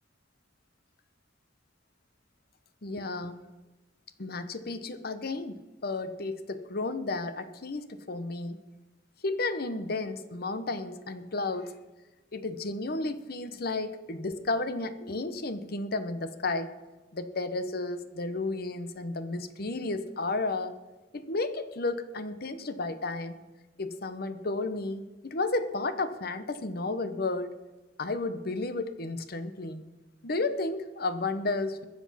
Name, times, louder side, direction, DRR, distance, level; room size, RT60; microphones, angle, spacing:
voice 1, 2.8-3.4 4.2-8.6 9.2-11.7 12.3-16.7 17.1-20.7 21.1-23.4 23.8-27.5 28.0-29.8 30.2-31.8, left 3 dB, 55° left, 11 dB, 1.0 m, -32 dB
21.0 x 7.4 x 5.8 m, 1.1 s
head